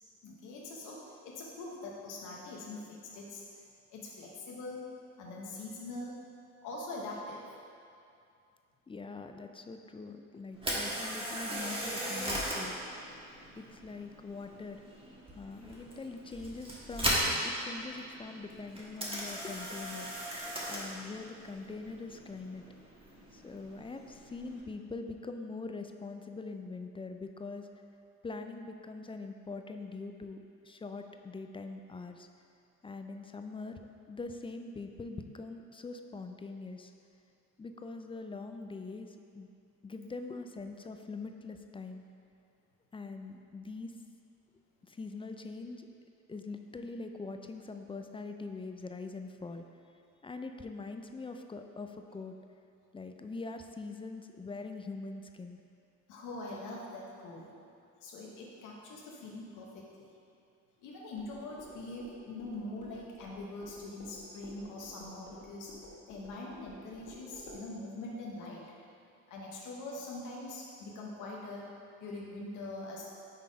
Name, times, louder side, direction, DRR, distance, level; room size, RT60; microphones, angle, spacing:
voice 1, 0.2-3.4 3.9-4.9 5.2-6.2 6.6-7.5 56.1-57.5 58.0-60.1 60.8-65.7 66.1-68.6 69.3-71.7 72.0-73.1, left 2 dB, 90° left, -3 dB, 0.9 m, -43 dB
voice 2, 8.9-13.1 13.6-14.8 15.3-20.1 20.7-22.6 23.3-27.7 28.2-32.3 32.8-36.9 37.6-39.5 39.8-42.0 42.9-43.9 44.9-49.6 50.2-52.3 52.9-55.6, left 3 dB, 20° left, 6 dB, 0.3 m, -43 dB
Camera, 10.5-24.6, equal, 20° right, 1.4 m, -38 dB
sound 1, 61.2-67.6, equal, 60° left, 1.4 m, -53 dB
5.6 x 4.0 x 5.0 m, 2.5 s
cardioid pair, 90°, 30 cm